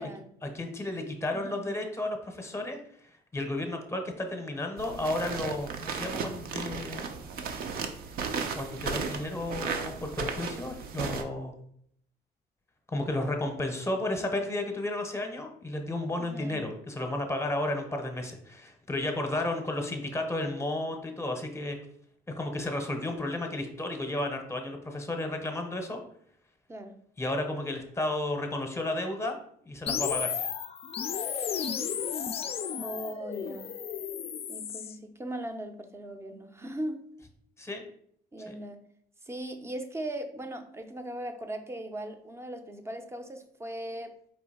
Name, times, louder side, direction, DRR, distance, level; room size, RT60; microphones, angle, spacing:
voice 1, 0.4-2.8 3.3-7.1 8.5-11.5 12.9-21.8 22.3-26.0 27.2-29.4 29.6-30.3 37.6-37.8 38.5-38.6, left 1 dB, 15° left, 4 dB, 0.8 m, -33 dB
voice 2, 1.3-1.7 16.2-16.7 26.7-27.0 32.8-33.7 34.5-37.0 38.3-38.8 39.2-44.2, right 1 dB, 15° right, 7 dB, 0.6 m, -39 dB
sound 1, 4.8-11.2, right 5 dB, 60° right, 0.6 m, -35 dB
sound 2, 29.9-35.0, left 7 dB, 35° left, 0.4 m, -33 dB
4.6 x 2.7 x 4.2 m, 0.66 s
cardioid pair, 110°, 17 cm